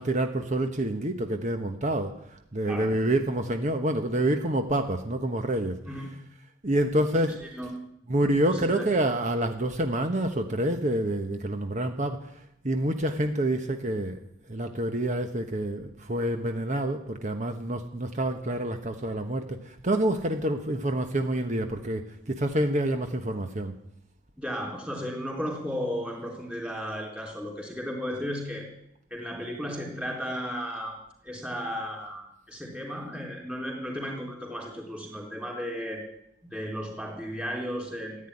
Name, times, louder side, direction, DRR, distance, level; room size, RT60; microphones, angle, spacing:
voice 1, 0.0-6.1 6.6-7.4 8.1-12.3 12.6-14.2 14.5-23.7, right 1 dB, 40° right, 6 dB, 1.1 m, -27 dB
voice 2, 8.1-8.9 24.4-28.7 29.1-31.0 31.2-36.0 36.4-38.3, equal, 5° right, 0 dB, 3.9 m, -34 dB
15.0 x 9.6 x 9.9 m, 0.76 s
head